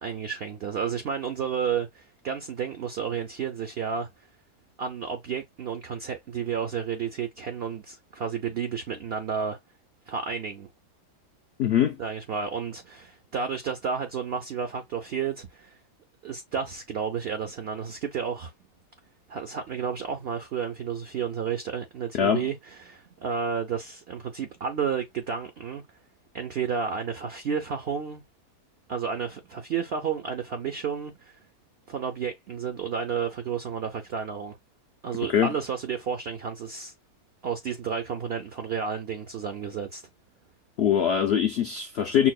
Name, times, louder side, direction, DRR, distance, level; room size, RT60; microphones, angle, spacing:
voice 1, 0.0-4.1 4.8-9.6 10.1-10.7 12.0-15.8 16.2-18.5 19.3-25.8 26.3-28.2 28.9-31.4 31.9-34.6 35.0-36.9 37.4-40.0, right 6 dB, 70° right, 0.5 m, -31 dB
voice 2, 11.6-12.0 22.1-22.4 35.3-35.5 40.8-42.3, left 9 dB, 80° left, 0.5 m, -23 dB
5.9 x 2.1 x 2.3 m
omnidirectional pair, 1.7 m